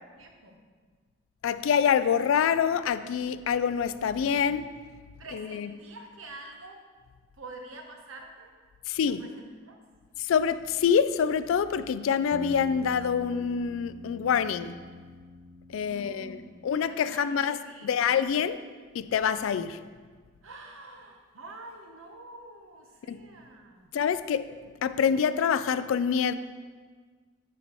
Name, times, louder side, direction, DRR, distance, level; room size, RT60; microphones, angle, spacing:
voice 1, 0.1-0.6 5.2-6.8 7.3-8.5 9.1-9.8 15.8-18.2 20.4-23.9, right 2 dB, 85° right, 3 dB, 1.0 m, -47 dB
voice 2, 1.4-4.7 5.3-5.7 8.9-9.2 10.2-14.8 15.7-17.6 17.8-18.6 18.9-19.8 23.1-23.2 23.9-24.5 24.8-26.3, left 7 dB, 75° left, 14 dB, 0.3 m, -26 dB
sound 1, 12.3-17.0, left 1 dB, 60° right, 0.4 m, -44 dB
12.0 x 4.4 x 3.0 m, 1.5 s
head